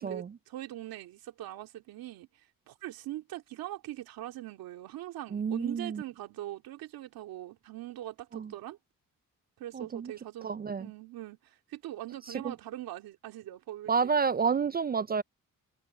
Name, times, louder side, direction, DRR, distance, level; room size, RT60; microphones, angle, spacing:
voice 1, 0.0-2.3 2.7-8.8 9.6-14.2, right 14 dB, 90° right, 2.4 m, -42 dB
voice 2, 5.3-6.0 8.3-8.5 9.7-10.1 10.4-10.9 12.3-12.5 13.9-15.2, right 6 dB, 30° right, 0.4 m, -29 dB
cardioid pair, 80°, 35 cm